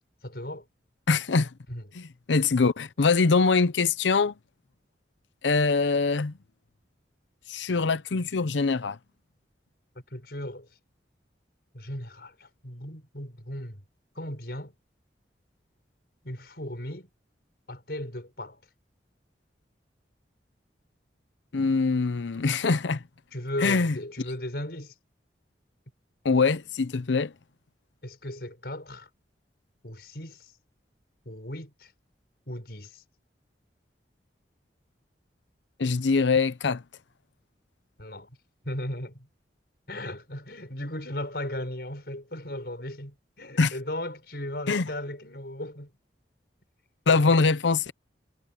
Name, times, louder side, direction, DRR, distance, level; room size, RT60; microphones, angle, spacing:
voice 1, 0.2-0.6 1.7-1.9 9.9-10.7 11.7-13.8 14.1-14.7 16.2-17.1 17.7-18.6 23.3-24.9 28.0-29.1 29.8-30.5 31.2-31.9 32.5-33.0 38.0-38.3 38.6-39.3 39.9-45.9 47.1-47.3, left 1 dB, 60° left, 6.8 m, -36 dB
voice 2, 1.1-1.5 2.0-2.1 2.3-4.3 5.4-6.3 7.5-9.0 21.5-23.0 23.6-23.9 26.2-27.3 35.8-36.8 43.6-43.7 44.7-44.8 47.1-47.9, left 4 dB, 85° left, 0.7 m, -23 dB
head